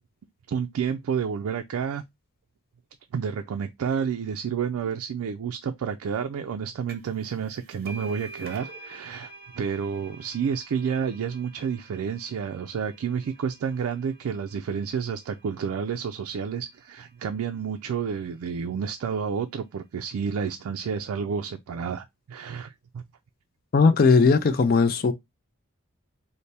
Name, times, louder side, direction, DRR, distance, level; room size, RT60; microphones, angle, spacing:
voice 1, 0.5-2.0 3.1-23.0, right 6 dB, 75° right, 0.3 m, -30 dB
sound 1, 6.9-7.2 7.5-14.8, right 3 dB, 45° right, 0.7 m, -46 dB
voice 2, 23.7-25.1, left 4 dB, 40° left, 0.4 m, -18 dB
3.3 x 2.1 x 4.0 m
head